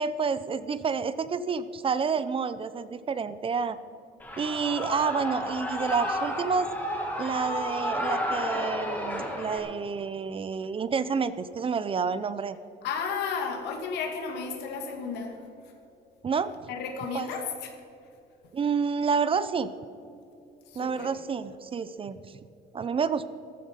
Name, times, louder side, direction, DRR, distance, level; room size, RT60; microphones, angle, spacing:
voice 1, 0.0-3.8 4.4-6.7 7.2-12.6 16.2-16.5 17.1-17.3 18.5-19.7 20.8-22.4 22.7-23.2, right 5 dB, 30° right, 14 dB, 0.7 m, -29 dB
Shout / Cheering, 4.2-9.6, equal, 10° left, 3.5 m, -32 dB
voice 2, 12.8-15.4 16.7-17.8 20.7-21.1, left 5 dB, 80° left, 4 dB, 2.2 m, -33 dB
14.5 x 13.0 x 5.3 m, 2.7 s
cardioid pair, 110°, 17 cm